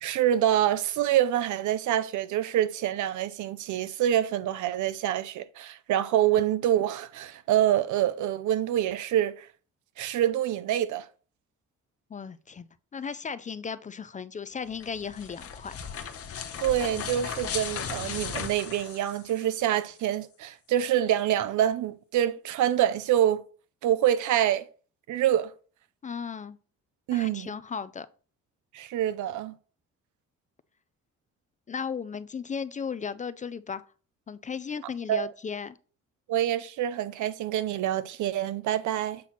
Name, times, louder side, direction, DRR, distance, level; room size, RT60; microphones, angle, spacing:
voice 1, 0.0-9.5 10.0-11.1 16.6-23.4 23.8-24.6 25.1-25.5 27.1-27.5 28.7-29.6 35.1-35.3 36.3-39.2, right 11 dB, 75° right, 0.6 m, -26 dB
voice 2, 12.1-12.7 12.9-15.8 26.0-26.6 27.1-28.1 31.7-33.8 34.3-35.8, left 6 dB, 25° left, 0.3 m, -35 dB
sound 1, 14.7-19.7, left 7 dB, 50° left, 0.9 m, -36 dB
7.5 x 2.8 x 5.8 m
cardioid pair, 90°, 30 cm